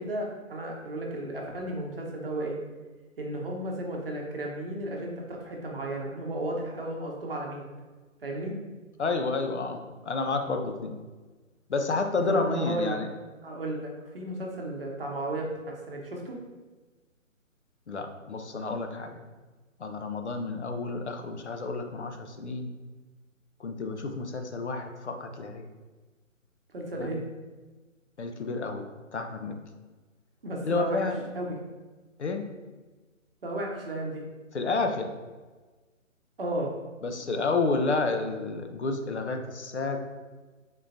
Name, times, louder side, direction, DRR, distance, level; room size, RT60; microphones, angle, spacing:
voice 1, 0.0-2.6 3.2-7.6 8.2-8.6 12.3-13.0 13.4-16.4 26.7-27.2 30.4-31.1 31.3-31.6 33.4-34.2 36.4-36.7, right 1 dB, 45° right, -1 dB, 0.8 m, -34 dB
voice 2, 9.0-10.9 11.7-13.1 17.9-19.2 19.8-22.7 23.6-25.7 27.0-27.1 28.2-28.9 29.1-29.6 30.6-31.2 32.2-32.5 34.5-35.1 37.0-40.0, left 3 dB, 55° left, 5 dB, 0.5 m, -30 dB
3.7 x 3.6 x 2.6 m, 1.3 s
figure-of-eight pair, 145°, 40 cm